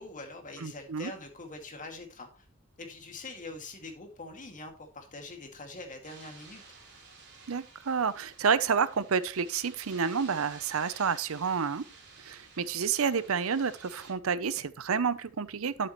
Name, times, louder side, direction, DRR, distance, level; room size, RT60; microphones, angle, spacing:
voice 1, 0.0-2.5 2.8-6.6, left 2 dB, 40° left, 2.2 m, -44 dB
voice 2, 0.6-1.1 7.5-11.9 12.2-15.9, right 6 dB, 75° right, 0.6 m, -29 dB
sound 1, 6.0-14.1, right 4 dB, 55° right, 3.7 m, -52 dB
12.0 x 7.6 x 3.1 m
head